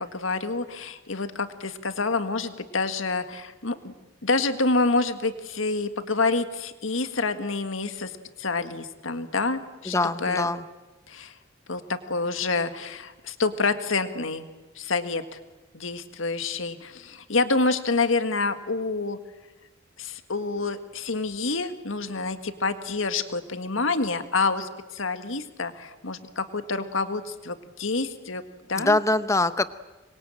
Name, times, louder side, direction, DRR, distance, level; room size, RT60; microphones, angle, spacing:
voice 1, 0.0-3.9 4.2-8.1 8.4-9.9 10.2-10.5 11.1-11.3 11.7-14.4 14.8-15.4 15.7-19.2 20.0-28.4 28.7-29.0, left 3 dB, 75° left, 9 dB, 1.7 m, -27 dB
voice 2, 9.8-10.6 28.7-29.7, left 2 dB, 15° left, 13 dB, 0.9 m, -23 dB
26.0 x 22.5 x 8.9 m, 1.2 s
head